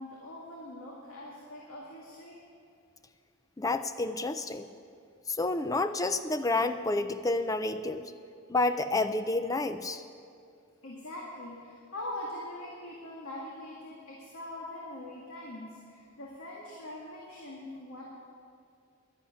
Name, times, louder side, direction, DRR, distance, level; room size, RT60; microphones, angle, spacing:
voice 1, 0.0-2.4 10.8-18.0, left 1 dB, 70° left, -3 dB, 2.1 m, -42 dB
voice 2, 3.6-4.7 5.3-8.1 8.5-10.0, left 2 dB, 15° left, 10 dB, 0.4 m, -29 dB
11.5 x 11.5 x 9.5 m, 2.4 s
head